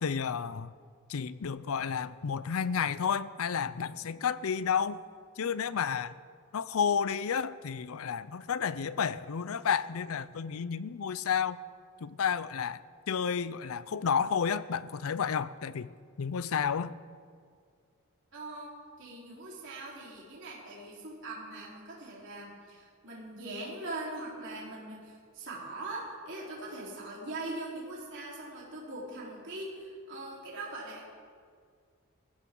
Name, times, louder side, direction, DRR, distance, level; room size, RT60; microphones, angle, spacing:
voice 1, 0.0-0.7 1.1-5.0 5.4-6.2 6.5-11.6 12.0-15.9 16.2-16.9, left 7 dB, 70° left, 17 dB, 0.5 m, -31 dB
voice 2, 18.3-31.1, right 2 dB, 55° right, -5 dB, 4.0 m, -41 dB
19.0 x 15.0 x 3.8 m, 2.1 s
head